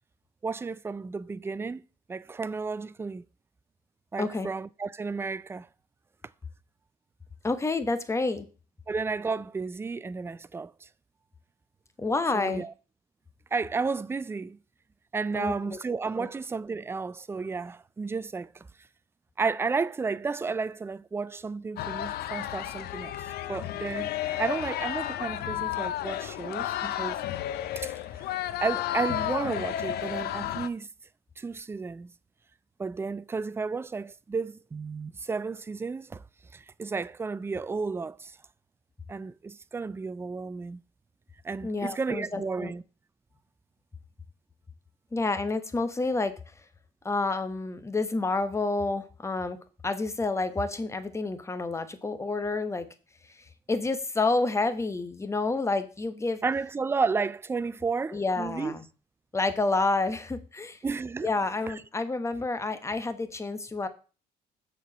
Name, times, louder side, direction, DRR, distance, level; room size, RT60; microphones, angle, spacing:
voice 1, 0.4-1.8 2.1-3.2 4.1-5.7 8.9-10.9 12.3-12.7 13.5-14.6 15.1-18.5 19.4-23.1 23.5-27.2 27.8-27.9 28.6-30.9 31.4-32.1 32.8-36.2 36.5-38.3 39.1-40.8 41.4-42.8 56.4-58.7 60.8-61.3 61.7-61.8, right 4 dB, 15° right, 0.3 m, -32 dB
voice 2, 4.2-4.5 7.4-8.4 12.0-12.6 15.3-15.8 16.2-16.3 41.6-42.7 45.1-46.3 47.0-49.6 49.8-52.9 53.7-56.4 58.1-58.8 59.3-60.8 61.2-63.9, left 3 dB, 15° left, 1.0 m, -29 dB
sound 1, 21.8-30.7, left 12 dB, 70° left, 0.6 m, -32 dB
7.1 x 4.5 x 6.1 m
cardioid pair, 110°, 17 cm